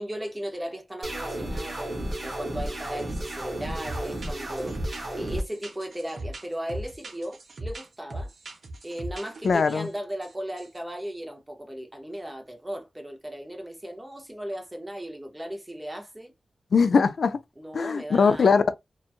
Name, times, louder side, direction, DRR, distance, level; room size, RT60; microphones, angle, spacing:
voice 1, 0.0-4.8 5.1-8.3 8.8-16.3 17.6-18.6, equal, 15° right, 0.7 m, -36 dB
sound 1, 1.0-5.4, right 1 dB, 40° right, 1.1 m, -33 dB
sound 2, 3.0-3.3 3.6-9.9 10.2-10.3 10.6-10.8, right 1 dB, 70° right, 0.8 m, -39 dB
voice 2, 9.4-9.9 16.7-17.4 17.7-18.8, left 5 dB, 70° left, 0.3 m, -21 dB
2.9 x 2.3 x 2.4 m
wide cardioid pair, 130°, 0 cm